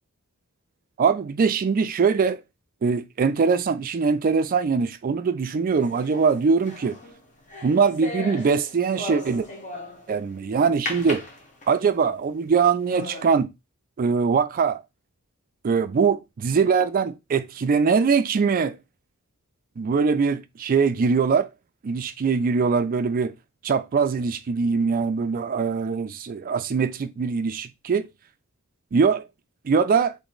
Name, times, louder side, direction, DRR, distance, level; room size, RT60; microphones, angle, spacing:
voice 1, 1.0-2.4 2.8-7.0 7.6-9.5 10.1-11.2 11.7-13.5 14.0-14.8 15.6-18.8 19.8-21.5 21.8-23.3 23.6-28.1 28.9-29.2 29.6-30.2, right 5 dB, 40° right, 0.3 m, -22 dB
sound 1, 5.8-10.2 10.9-12.0 12.5-12.6 12.9-13.4, left 2 dB, 35° left, 0.9 m, -36 dB
3.0 x 2.6 x 3.8 m
head